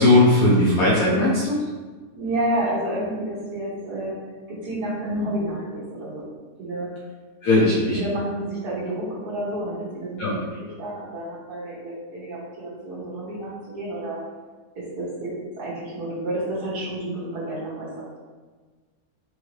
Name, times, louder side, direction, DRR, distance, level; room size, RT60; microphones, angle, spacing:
voice 1, 0.0-1.6 7.4-8.0 10.2-10.3, left 2 dB, 65° left, -7 dB, 1.1 m, -18 dB
voice 2, 2.1-4.2 4.5-6.2 6.6-6.9 7.6-10.5 10.8-14.2 14.7-18.1, right 1 dB, 70° right, -8 dB, 1.8 m, -30 dB
4.6 x 2.7 x 3.1 m, 1.4 s
omnidirectional pair, 1.7 m